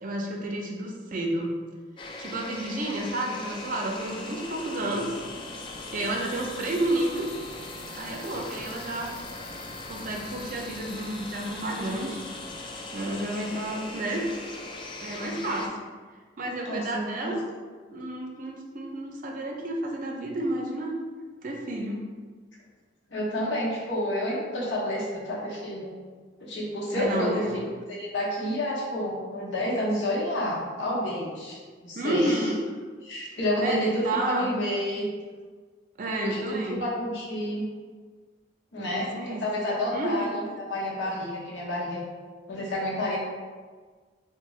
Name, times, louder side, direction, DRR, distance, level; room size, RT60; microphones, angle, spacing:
voice 1, 0.0-1.6 2.2-5.1 5.9-7.3 8.0-9.1 9.9-12.2 12.9-14.3 15.0-15.7 16.4-17.4 17.9-20.9 21.4-22.0 26.9-27.7 32.0-32.6 33.6-34.6 36.0-36.8 38.8-39.4 39.9-40.4, right 1 dB, 50° right, 0 dB, 0.5 m, -30 dB
sound 1, 2.0-15.7, left 2 dB, 30° left, 0.3 m, -39 dB
voice 2, 16.6-17.3 23.1-25.9 26.4-27.6 27.9-32.5 33.0-35.0 36.2-37.7 38.7-39.1 39.4-42.0 42.5-43.2, left 1 dB, 85° left, -4 dB, 0.9 m, -29 dB
3.5 x 2.2 x 3.0 m, 1.5 s
head